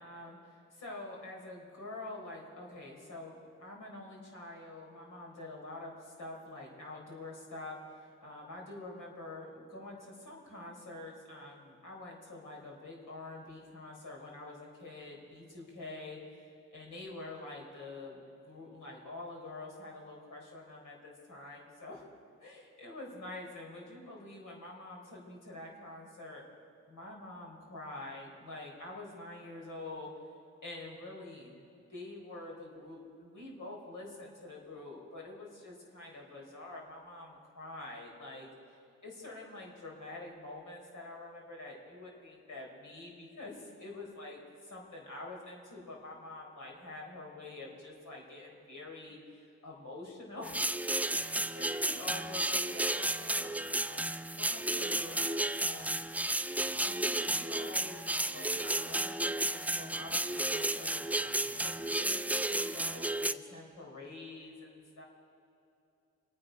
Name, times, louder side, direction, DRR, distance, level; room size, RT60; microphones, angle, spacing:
voice 1, 0.0-22.1 22.4-26.4 26.9-30.1 30.6-31.6 31.9-38.5 39.0-50.6 51.1-55.9 56.8-65.0, left 2 dB, 75° left, -1 dB, 4.2 m, -46 dB
sound 1, 50.4-63.3, right 1 dB, 5° right, 0.4 m, -33 dB
25.0 x 9.3 x 5.2 m, 2.7 s
cardioid pair, 75°, 31 cm